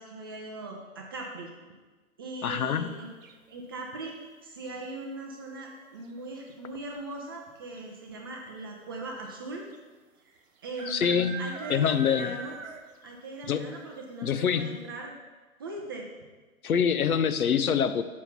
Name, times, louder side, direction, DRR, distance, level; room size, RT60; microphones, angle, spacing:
voice 1, 0.0-1.5 2.2-3.1 3.5-4.2 4.4-9.6 10.2-12.6 13.0-15.1 15.6-16.1, right 2 dB, 15° right, 0 dB, 0.4 m, -40 dB
voice 2, 2.4-2.9 10.9-12.4 13.5-13.8 14.2-14.8 16.6-18.0, left 7 dB, 75° left, 11 dB, 0.7 m, -26 dB
Chickens in Tarkastad, 3.2-3.7 5.5-5.9 6.2-6.3 6.5-7.0 7.8-7.9 8.1-8.2 9.7-9.8 10.8-13.1 13.4-13.5 14.0-14.1 14.5-14.6, right 2 dB, 65° right, 1.0 m, -41 dB
6.4 x 5.5 x 5.7 m, 1.3 s
figure-of-eight pair, 130°, 43 cm